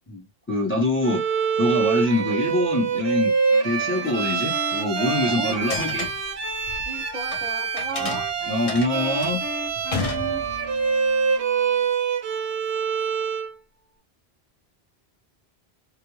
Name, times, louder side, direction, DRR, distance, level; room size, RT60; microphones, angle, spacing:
voice 1, 0.1-1.2 1.6-3.3 3.6-6.1 8.0-8.1 8.5-9.5, left 1 dB, 10° left, 0.9 m, -24 dB
Bowed string instrument, 1.0-13.5, right 6 dB, 70° right, 0.7 m, -25 dB
Wind instrument woodwind instrument, 3.5-11.9, left 3 dB, 70° left, 1.2 m, -38 dB
voice 2, 5.3-5.8 6.9-8.2 9.9-10.4, right 4 dB, 30° right, 0.8 m, -35 dB
sound 1, 5.7-7.4 7.8-10.8, left 4 dB, 45° left, 0.5 m, -32 dB
2.5 x 2.2 x 3.1 m
omnidirectional pair, 1.1 m